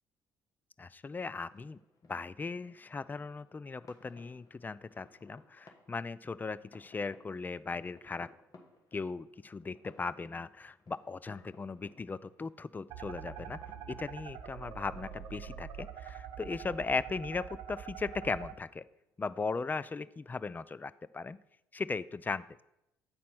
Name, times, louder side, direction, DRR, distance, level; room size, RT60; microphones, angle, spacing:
voice 1, 0.8-1.8 2.1-8.3 8.9-13.6 13.9-18.9 19.2-21.4 21.7-22.6, left 4 dB, 20° left, 17 dB, 0.3 m, -38 dB
sound 1, 1.3-20.4, left 3 dB, 45° left, 1.3 m, -63 dB
sound 2, 12.9-18.5, right 9 dB, 65° right, 0.8 m, -45 dB
sound 3, 13.7-16.3, right 3 dB, 35° right, 1.0 m, -65 dB
8.4 x 4.3 x 6.0 m, 0.85 s
supercardioid pair, 65°, 8 cm